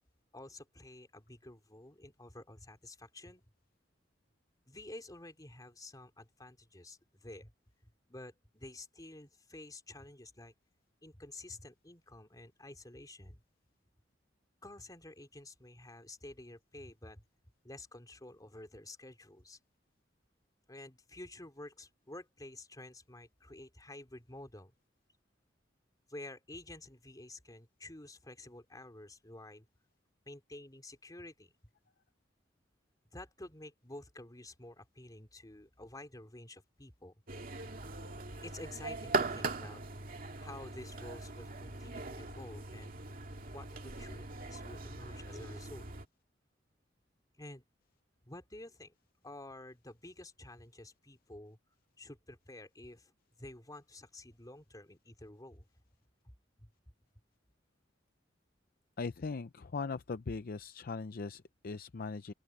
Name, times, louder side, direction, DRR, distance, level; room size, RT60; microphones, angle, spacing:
voice 1, 0.3-3.4 4.7-7.5 7.8-10.5 11.0-13.4 14.6-17.2 17.6-19.6 20.7-24.7 26.1-29.7 30.3-31.5 33.1-37.1 38.4-39.8 40.4-43.0 43.5-45.9 47.4-47.6 48.3-48.9 49.2-51.6 52.0-53.1 53.4-55.7 56.6-56.7, left 1 dB, 20° left, 3.3 m, -50 dB
sound 1, 37.3-46.1, right 3 dB, 50° right, 2.3 m, -40 dB
voice 2, 59.0-62.3, left 4 dB, 50° left, 0.5 m, -39 dB
open air
head